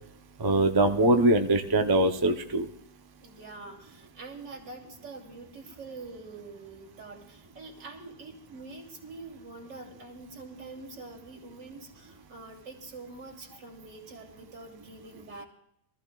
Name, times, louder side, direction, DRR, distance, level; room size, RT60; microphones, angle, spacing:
voice 1, 0.4-2.7, right 2 dB, 25° right, 5 dB, 0.4 m, -22 dB
voice 2, 3.2-15.4, right 3 dB, 75° right, 0 dB, 3.5 m, -45 dB
24.0 x 14.5 x 2.5 m, 0.76 s
omnidirectional pair, 2.0 m